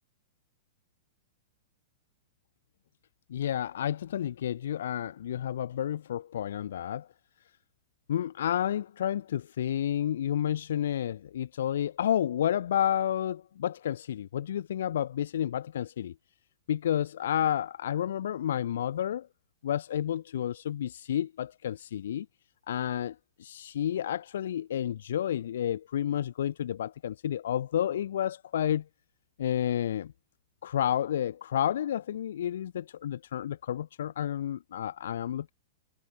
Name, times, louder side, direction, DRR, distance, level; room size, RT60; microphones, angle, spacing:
voice 1, 3.3-7.1 8.1-16.1 16.7-19.3 19.6-22.3 22.7-28.8 29.4-30.1 30.6-35.5, left 10 dB, 70° left, 0.6 m, -30 dB
hypercardioid pair, 110°, 0 cm